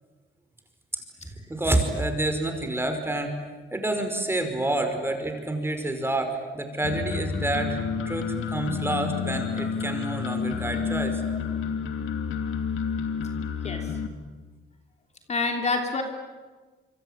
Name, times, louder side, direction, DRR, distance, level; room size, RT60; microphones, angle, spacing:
voice 1, 1.5-3.4 3.7-7.8 8.0-11.2, right 2 dB, 10° right, 6 dB, 5.1 m, -28 dB
sound 1, 6.8-14.1, left 6 dB, 75° left, 2.8 m, -30 dB
voice 2, 13.6-14.0 15.3-16.0, left 3 dB, 35° left, 3 dB, 3.2 m, -27 dB
26.0 x 25.0 x 9.0 m, 1.4 s
cardioid pair, 100°, 21 cm